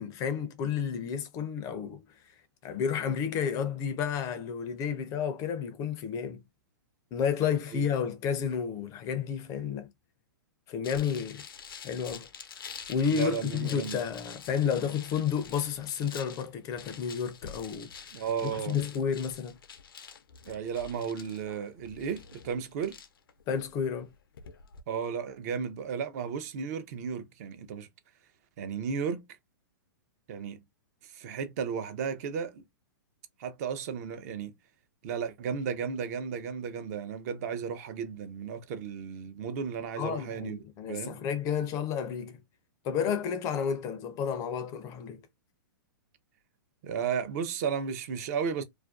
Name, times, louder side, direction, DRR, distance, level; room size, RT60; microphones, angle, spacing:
voice 1, 0.0-2.0 2.6-6.4 7.1-9.9 10.7-11.4 11.8-12.3 12.9-17.9 18.4-19.6 23.5-24.1 40.0-42.4 42.8-45.2, left 7 dB, 30° left, 0.4 m, -31 dB
sound 1, 10.8-24.8, left 7 dB, 85° left, 0.4 m, -47 dB
voice 2, 13.1-14.0 18.1-18.8 20.5-23.0 24.9-27.9 28.6-29.2 30.3-30.6 31.1-32.6 33.4-34.5 35.0-40.6 40.9-41.2 46.8-48.6, right 6 dB, 50° right, 0.5 m, -34 dB
2.4 x 2.2 x 2.3 m
hypercardioid pair, 130°, 11 cm